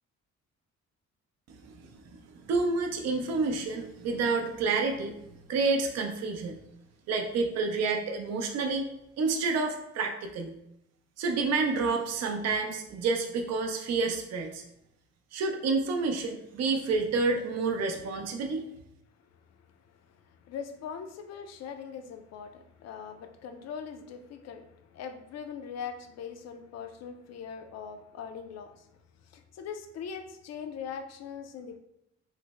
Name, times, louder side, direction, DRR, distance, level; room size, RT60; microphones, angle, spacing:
voice 1, 2.5-5.2 5.5-6.6 7.1-8.8 9.2-10.5 11.2-14.6 15.3-18.6, right 4 dB, 60° right, 4 dB, 0.5 m, -29 dB
voice 2, 20.3-28.9 29.3-31.8, left 7 dB, 60° left, 6 dB, 0.5 m, -41 dB
3.2 x 2.0 x 3.4 m, 0.81 s
cardioid pair, 90°, 30 cm